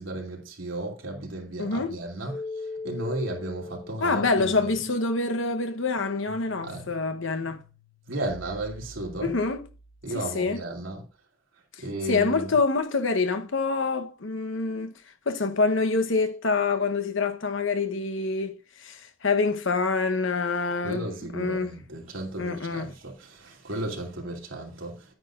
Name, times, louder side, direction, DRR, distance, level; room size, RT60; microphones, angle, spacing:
voice 1, 0.0-2.4 2.8-4.7 6.6-6.9 8.1-9.4 10.0-11.0 11.8-12.5 20.8-25.1, right 1 dB, 90° right, 2.8 m, -34 dB
voice 2, 1.6-1.9 4.0-7.6 9.2-9.6 10.1-10.6 12.0-15.0 15.3-21.7 22.4-22.9, left 4 dB, 75° left, 1.0 m, -26 dB
sound 1, 2.3-10.1, left 2 dB, 15° left, 1.3 m, -41 dB
10.5 x 9.2 x 2.5 m
head